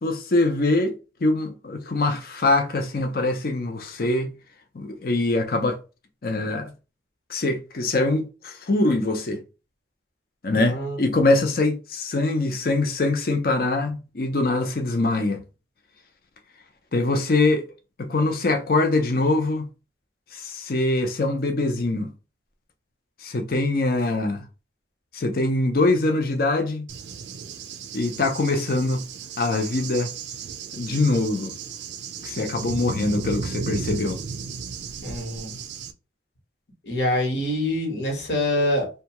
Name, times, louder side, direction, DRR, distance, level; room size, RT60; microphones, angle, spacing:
voice 1, 0.0-4.3 4.7-5.8 6.2-6.7 7.3-9.4 10.4-15.4 16.9-17.6 18.0-19.6 20.3-22.1 23.2-24.4 25.1-26.8 27.9-29.0 29.4-30.1 30.7-31.5 32.2-34.2, left 2 dB, 55° left, 0.6 m, -23 dB
voice 2, 10.5-11.0 35.0-35.6 36.8-38.9, left 1 dB, 80° left, 1.2 m, -25 dB
Cricket / Thunder, 26.9-35.9, right 5 dB, 80° right, 0.4 m, -35 dB
2.7 x 2.3 x 2.9 m
head